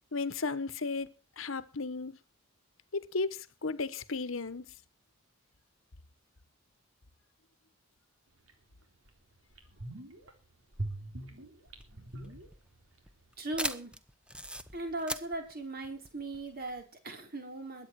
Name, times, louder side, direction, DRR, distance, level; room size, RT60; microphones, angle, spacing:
voice 1, 0.1-2.2 2.9-4.7, left 3 dB, 70° left, 1.1 m, -35 dB
sound 1, 8.5-8.6 9.1-9.2 9.5-10.3 10.7-13.0 13.2-13.3, right 2 dB, 75° right, 4.0 m, -41 dB
sound 2, 11.7-16.8, right 1 dB, 5° right, 1.0 m, -40 dB
voice 2, 13.4-13.9 14.7-17.9, right 2 dB, 50° right, 4.8 m, -38 dB
22.0 x 9.3 x 4.8 m
head